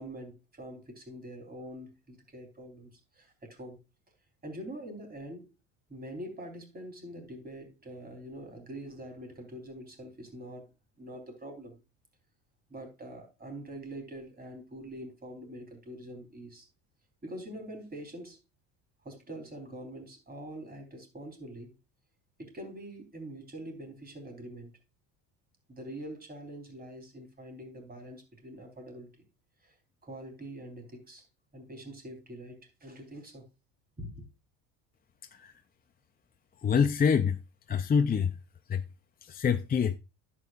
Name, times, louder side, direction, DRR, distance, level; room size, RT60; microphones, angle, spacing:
voice 1, 0.0-3.8 4.4-5.5 5.9-10.7 11.0-11.8 12.7-16.7 17.2-18.4 19.0-21.7 22.4-24.7 25.7-29.1 29.6-29.8 30.0-31.2 31.5-33.5 34.0-34.2, right 1 dB, 20° right, 4.0 m, -44 dB
voice 2, 36.6-37.4 37.7-38.3 38.7-38.8 39.2-40.0, left 6 dB, 20° left, 0.5 m, -26 dB
10.5 x 8.7 x 2.5 m
supercardioid pair, 100°, 43 cm